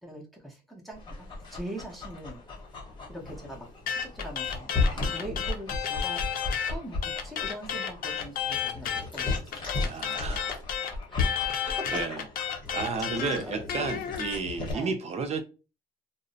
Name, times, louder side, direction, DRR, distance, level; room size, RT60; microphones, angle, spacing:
voice 1, 0.0-2.4 3.1-3.7 4.0-6.2 6.6-9.6 10.1-10.2 11.8-11.9 13.4-13.7 14.7-14.9, right 1 dB, ahead, 0.7 m, -42 dB
Dog, 0.9-14.7, left 3 dB, 25° left, 0.9 m, -35 dB
sound 1, 3.9-6.7 7.0-14.4, left 8 dB, 60° left, 0.5 m, -32 dB
voice 2, 4.9-5.3 9.8-10.5 11.4-12.3 12.7-15.4, right 4 dB, 40° right, 0.5 m, -33 dB
2.5 x 2.0 x 2.4 m
cardioid pair, 110°, 17 cm